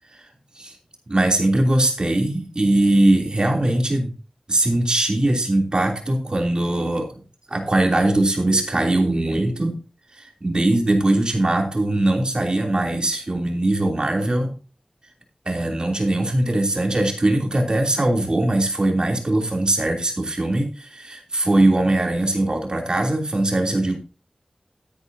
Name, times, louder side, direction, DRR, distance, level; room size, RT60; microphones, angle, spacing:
voice 1, 1.1-4.1 4.5-7.2 7.5-9.8 10.1-14.5 15.4-24.0, right 1 dB, 45° right, 2 dB, 3.1 m, -21 dB
14.0 x 9.7 x 2.8 m, 0.34 s
wide cardioid pair, 65°, 2 cm